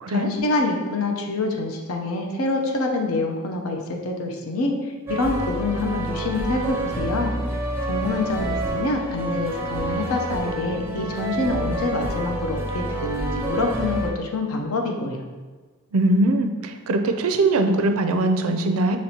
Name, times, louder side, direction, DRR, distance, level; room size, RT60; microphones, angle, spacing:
voice 1, 0.1-4.7 5.1-7.3 7.9-15.2, left 2 dB, 70° left, 2 dB, 0.7 m, -26 dB
sound 1, 5.1-14.1, right 1 dB, 10° right, 0.5 m, -28 dB
voice 2, 15.9-19.0, right 2 dB, 70° right, 7 dB, 0.4 m, -21 dB
5.8 x 3.1 x 2.8 m, 1.3 s
head